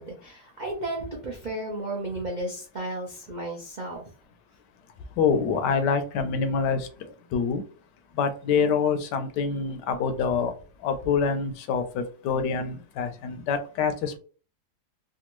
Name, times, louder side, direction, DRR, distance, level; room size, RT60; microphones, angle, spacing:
voice 1, 0.0-4.0, right 1 dB, 60° right, -2 dB, 0.4 m, -33 dB
voice 2, 5.2-7.6 8.1-10.5 10.8-14.2, left 5 dB, 85° left, 9 dB, 1.2 m, -26 dB
3.4 x 2.3 x 3.0 m, 0.38 s
omnidirectional pair, 1.8 m